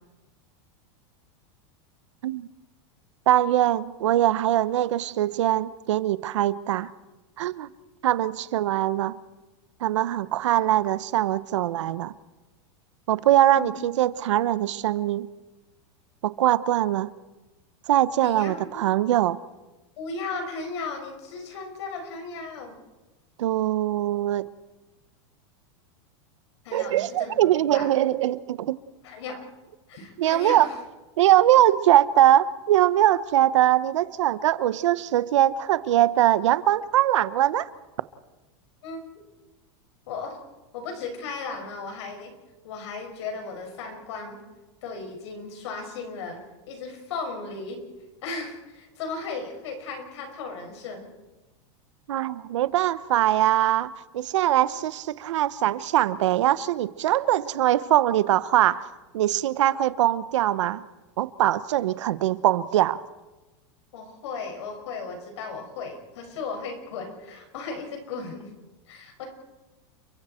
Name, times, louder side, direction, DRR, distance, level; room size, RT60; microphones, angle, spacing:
voice 1, 3.3-6.9 7.4-7.7 8.0-9.2 9.8-12.1 13.1-15.3 16.2-17.1 17.9-19.4 23.4-24.5 26.7-28.7 30.2-30.7 31.2-37.7 52.1-60.8 61.2-63.0, right 13 dB, 85° right, 1.0 m, -22 dB
voice 2, 18.2-18.8 20.0-22.8 26.6-27.9 29.0-29.4 29.9-30.8 38.8-39.0 40.1-40.4 40.7-42.3 42.6-44.4 44.8-46.4 46.7-47.8 48.2-51.1 63.9-68.5 68.9-69.3, left 4 dB, 70° left, 6.1 m, -36 dB
30.0 x 23.0 x 4.5 m
supercardioid pair, 165°, 15 cm